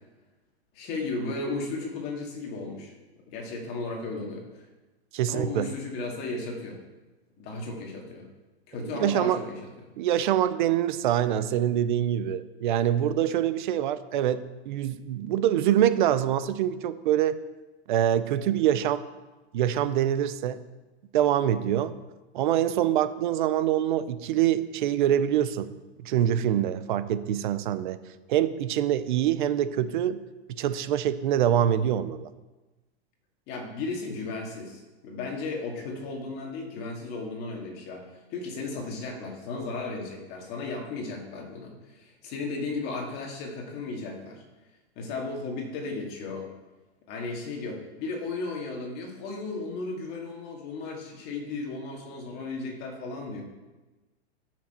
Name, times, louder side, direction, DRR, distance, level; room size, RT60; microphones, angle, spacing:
voice 1, 0.7-2.9 3.3-4.6 5.3-6.8 7.4-8.3 8.7-9.7 33.5-44.4 45.0-46.5 47.1-53.4, left 3 dB, 30° left, 1 dB, 2.1 m, -35 dB
voice 2, 5.1-5.7 8.9-9.4 10.0-17.4 17.9-19.0 19.5-20.6 21.1-21.9 22.3-25.7 26.0-28.0 28.3-30.2 30.5-32.3, right 11 dB, 45° right, 13 dB, 0.6 m, -25 dB
13.0 x 6.2 x 4.4 m, 1.1 s
supercardioid pair, 160°, 33 cm